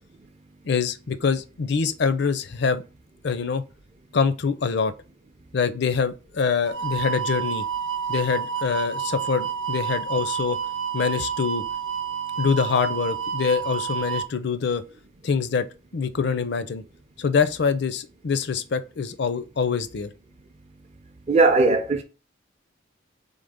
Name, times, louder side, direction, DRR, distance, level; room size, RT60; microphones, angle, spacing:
voice 1, 0.6-2.8 3.2-3.6 4.1-4.9 5.5-7.7 8.1-10.6 10.9-11.6 12.4-14.8 15.2-15.7 15.9-16.8 17.2-20.1, left 5 dB, 55° left, 0.5 m, -24 dB
sound 1, 6.7-14.3, right 7 dB, 75° right, 0.8 m, -29 dB
voice 2, 21.3-22.0, right 3 dB, 35° right, 0.5 m, -18 dB
3.9 x 3.5 x 3.5 m
head